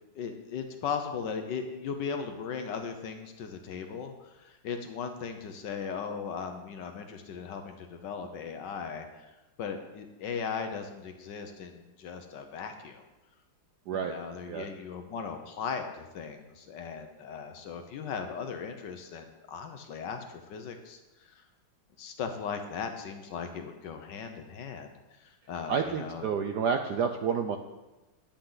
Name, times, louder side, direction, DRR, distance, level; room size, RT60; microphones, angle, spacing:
voice 1, 0.2-9.3 9.6-13.0 13.9-21.0 21.3-21.4 22.0-24.9 25.2-26.3, left 6 dB, 65° left, 6 dB, 1.3 m, -38 dB
voice 2, 25.7-27.6, right 6 dB, 70° right, 6 dB, 1.0 m, -29 dB
10.5 x 8.5 x 3.9 m, 1.1 s
omnidirectional pair, 2.3 m